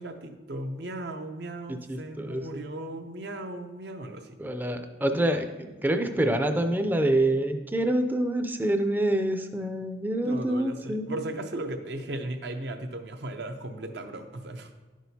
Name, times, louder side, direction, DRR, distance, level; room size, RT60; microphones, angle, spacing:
voice 1, 0.0-4.4 10.2-14.7, right 1 dB, 65° right, 7 dB, 0.6 m, -36 dB
voice 2, 1.7-2.6 4.4-11.2, right 1 dB, 10° right, 7 dB, 0.4 m, -27 dB
10.0 x 6.1 x 2.7 m, 1.2 s
head